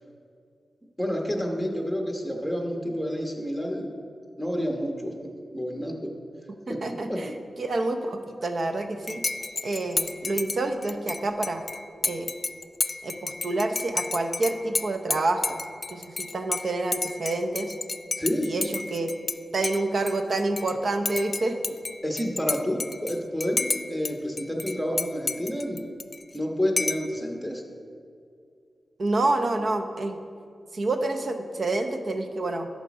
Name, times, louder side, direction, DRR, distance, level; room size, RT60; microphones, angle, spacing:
voice 1, 1.0-3.9 4.4-5.1 5.5-6.1 6.7-6.8 7.1-7.2 18.2-18.5 22.0-25.8 26.3-27.6, equal, ahead, 1 dB, 1.2 m, -29 dB
voice 2, 6.7-9.2 9.6-11.6 12.0-12.3 13.0-15.6 15.9-17.7 18.4-19.1 19.5-21.6 29.0-30.2 30.7-32.7, right 2 dB, 55° right, 6 dB, 0.7 m, -28 dB
Dishes pots and pans / Cutlery silverware / Chink clink, 9.1-19.4 19.6-20.7 21.0-24.1 24.4-26.4 26.8-27.1, left 3 dB, 40° left, 0.3 m, -31 dB
11.5 x 4.2 x 6.1 m, 2.4 s
wide cardioid pair, 90°, 0 cm